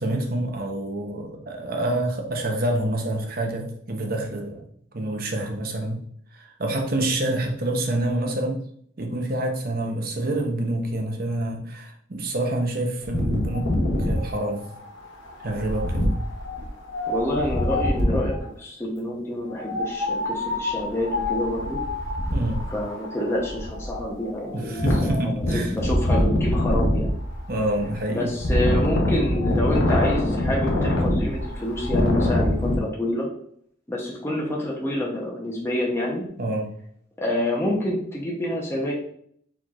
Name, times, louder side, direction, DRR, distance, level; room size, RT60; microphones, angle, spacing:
voice 1, 0.0-4.6 4.9-6.0 6.3-8.6 9.0-13.7 14.0-14.7 15.4-16.1 22.3-22.6 24.5-25.7 27.5-28.3 36.4-36.7, right 1 dB, 50° right, 2 dB, 0.8 m, -27 dB
Wind, 13.0-18.5 19.5-32.8, left 1 dB, 70° left, 1.0 m, -25 dB
voice 2, 17.1-21.8 22.7-24.9 25.2-27.1 28.1-33.3 33.9-36.2 37.2-38.9, left 1 dB, 15° left, -3 dB, 0.8 m, -27 dB
4.5 x 4.4 x 2.4 m, 0.64 s
head